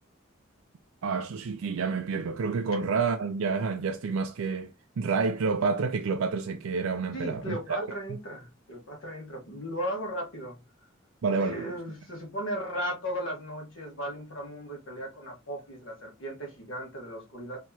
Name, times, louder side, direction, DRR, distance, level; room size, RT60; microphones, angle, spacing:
voice 1, 1.0-7.8 11.2-11.7, right 4 dB, 90° right, 0.4 m, -29 dB
voice 2, 7.1-10.6 11.4-17.6, equal, 70° left, 1.7 m, -36 dB
4.6 x 2.9 x 2.8 m
head